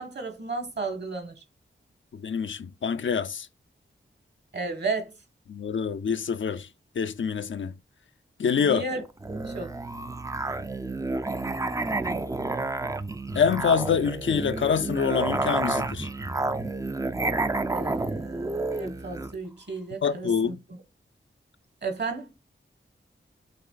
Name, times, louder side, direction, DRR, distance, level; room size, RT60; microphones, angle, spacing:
voice 1, 0.0-1.3 4.5-5.1 8.6-9.0 9.4-9.7 17.7-20.5 21.8-22.3, right 3 dB, 55° right, 1.4 m, -33 dB
voice 2, 2.1-3.5 5.5-6.7 7.0-7.7 8.4-8.8 13.4-16.1 20.0-20.6, left 6 dB, 65° left, 0.4 m, -26 dB
Musical instrument, 9.2-19.4, right 2 dB, 15° right, 0.4 m, -30 dB
5.9 x 3.2 x 2.4 m
wide cardioid pair, 60°, 21 cm